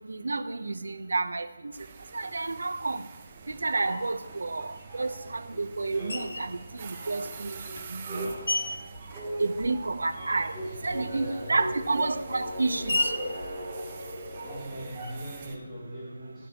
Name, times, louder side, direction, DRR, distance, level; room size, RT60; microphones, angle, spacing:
voice 1, 0.1-1.5 2.1-3.0 3.5-7.6 7.9-8.3 9.4-10.5 10.8-13.1, right 3 dB, 80° right, 0.6 m, -30 dB
sound 1, 1.7-15.6, right 5 dB, 25° right, 0.6 m, -46 dB
sound 2, 3.8-5.6 5.9-15.4, right 1 dB, 10° right, 2.5 m, -39 dB
Screech, 6.1-6.6 7.3-10.0 10.3-14.6, left 2 dB, 75° left, 1.1 m, -35 dB
voice 2, 10.1-11.7 14.4-16.5, right 1 dB, 5° left, 2.2 m, -42 dB
11.0 x 8.3 x 2.8 m
hypercardioid pair, 170°, 0 cm